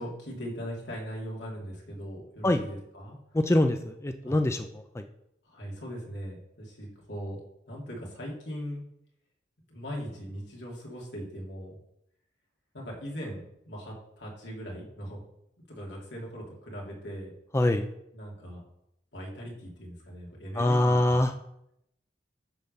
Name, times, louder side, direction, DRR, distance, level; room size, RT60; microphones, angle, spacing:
voice 1, 0.0-3.2 4.2-4.3 5.4-7.4 7.7-8.8 9.7-11.8 12.7-15.3 15.7-17.3 18.1-18.6 19.1-21.2, equal, 70° left, -2 dB, 2.8 m, -39 dB
voice 2, 3.3-5.1 17.5-17.9 20.5-21.3, left 1 dB, 15° left, 7 dB, 0.4 m, -24 dB
10.5 x 3.7 x 6.8 m, 0.80 s
head